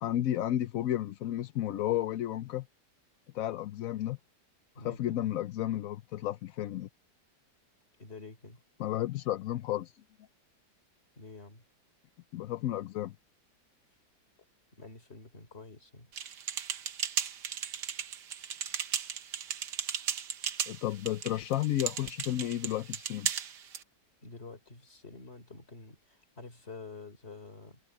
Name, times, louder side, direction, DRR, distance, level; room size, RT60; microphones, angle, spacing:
voice 1, 0.0-2.7 3.3-4.2 4.8-6.9 8.8-9.9 12.3-13.1 20.7-23.3, left 13 dB, 65° left, 0.9 m, -32 dB
voice 2, 4.7-5.2 8.0-8.6 11.2-11.6 14.7-16.1 24.2-27.8, left 3 dB, 35° left, 4.1 m, -48 dB
sound 1, 16.1-23.8, right 8 dB, 75° right, 1.7 m, -36 dB
omnidirectional pair, 1.9 m